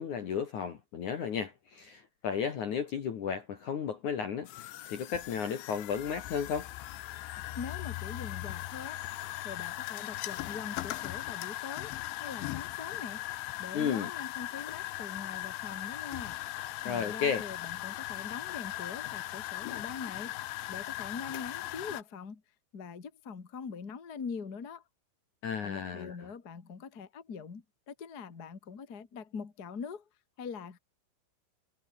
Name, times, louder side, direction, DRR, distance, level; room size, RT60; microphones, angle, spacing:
voice 1, 0.0-4.5 4.9-6.7 13.7-14.1 16.8-17.4 25.4-26.2, left 7 dB, 55° left, 2.4 m, -33 dB
sound 1, 4.5-22.0, left 16 dB, 75° left, 3.3 m, -39 dB
voice 2, 7.6-9.0 9.4-13.2 13.6-16.4 16.8-22.4 22.7-24.8 25.6-30.0 30.4-30.8, left 6 dB, 35° left, 1.7 m, -43 dB
omnidirectional pair, 5.6 m